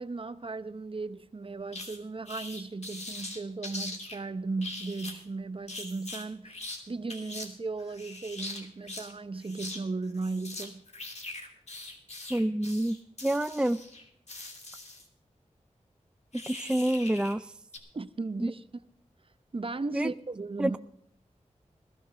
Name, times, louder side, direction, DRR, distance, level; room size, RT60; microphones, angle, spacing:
voice 1, 0.0-10.8 17.9-18.6 19.5-20.8, right 3 dB, 45° right, 0.8 m, -36 dB
sound 1, 1.7-2.0 2.3-4.2 4.6-5.2 5.7-6.8 7.1-7.5 7.8-9.1 9.4-9.8 10.0-15.1 16.3-17.4 17.7-17.8, left 2 dB, 60° left, 2.8 m, -42 dB
voice 2, 12.3-13.0 13.2-13.8 16.5-17.5 18.4-18.5 19.9-20.1 20.6-20.8, right 1 dB, 5° right, 0.4 m, -27 dB
21.0 x 13.0 x 3.4 m
wide cardioid pair, 65°, 13 cm